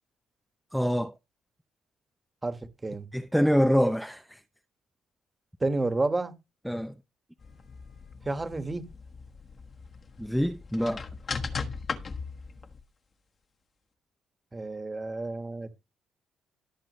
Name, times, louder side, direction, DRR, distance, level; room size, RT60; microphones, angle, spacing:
voice 1, 0.7-1.1 3.1-4.4 6.7-6.9 10.2-11.0, equal, ahead, 0.5 m, -25 dB
voice 2, 5.6-6.3 8.2-8.8 14.5-15.8, right 2 dB, 15° right, 1.6 m, -30 dB
sound 1, 7.4-12.8, left 4 dB, 30° left, 1.3 m, -38 dB
17.5 x 7.5 x 3.1 m
cardioid pair, 135°, 0 cm